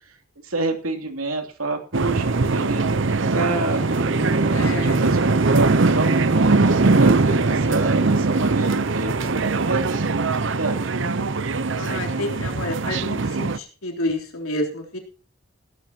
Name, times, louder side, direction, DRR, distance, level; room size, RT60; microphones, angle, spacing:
voice 1, 0.4-4.2 4.5-6.2 6.6-10.9, right 2 dB, 80° right, 5 dB, 3.0 m, -28 dB
sound 1, 1.9-13.6, right 3 dB, 60° right, 0.7 m, -21 dB
Bowed string instrument, 3.7-8.5, right 1 dB, 35° right, 1.0 m, -29 dB
voice 2, 4.5-5.0 11.8-15.0, left 1 dB, 85° left, 2 dB, 3.5 m, -29 dB
16.5 x 13.0 x 2.9 m, 0.37 s
head